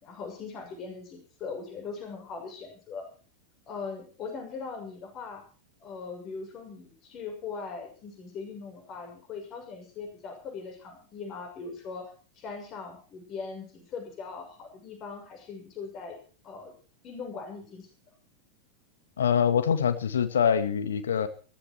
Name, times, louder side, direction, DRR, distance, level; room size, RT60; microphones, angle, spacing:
voice 1, 0.0-3.0 3.7-5.4 5.8-12.1 12.3-16.2 16.4-16.7 17.0-17.9, left 5 dB, 35° left, 3 dB, 6.4 m, -40 dB
voice 2, 19.2-21.3, left 7 dB, 65° left, 11 dB, 1.9 m, -24 dB
17.0 x 15.0 x 4.6 m, 0.38 s
figure-of-eight pair, 90°, 0 cm